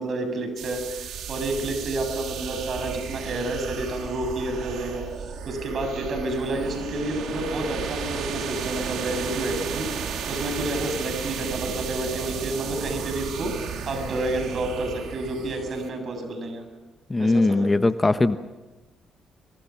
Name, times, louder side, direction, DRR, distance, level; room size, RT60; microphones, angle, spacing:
voice 1, 0.0-5.1 5.5-9.9 10.3-13.6 13.9-16.6 17.2-17.7, right 2 dB, 55° right, 6 dB, 7.4 m, -29 dB
sound 1, 0.6-15.9, right 7 dB, 80° right, 3.9 m, -34 dB
voice 2, 17.1-18.4, left 2 dB, 20° left, 10 dB, 1.2 m, -20 dB
28.0 x 24.5 x 6.0 m, 1.1 s
supercardioid pair, 70°, 0 cm